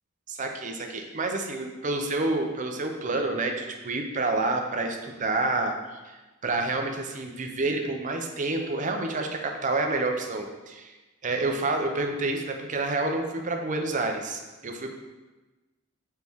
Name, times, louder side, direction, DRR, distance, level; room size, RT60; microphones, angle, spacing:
voice 1, 0.3-10.9 11.2-14.9, right 2 dB, 35° right, 3 dB, 0.6 m, -29 dB
6.2 x 4.3 x 3.5 m, 1.2 s
head